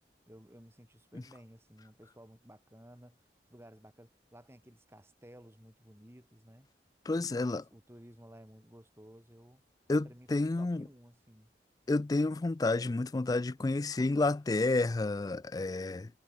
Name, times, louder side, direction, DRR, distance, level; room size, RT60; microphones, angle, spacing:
voice 1, 0.3-3.2 3.5-6.7 7.2-9.6 10.0-11.5, equal, 15° right, 4.0 m, -55 dB
voice 2, 7.1-7.6 9.9-10.8 11.9-16.1, left 2 dB, 20° left, 0.3 m, -30 dB
head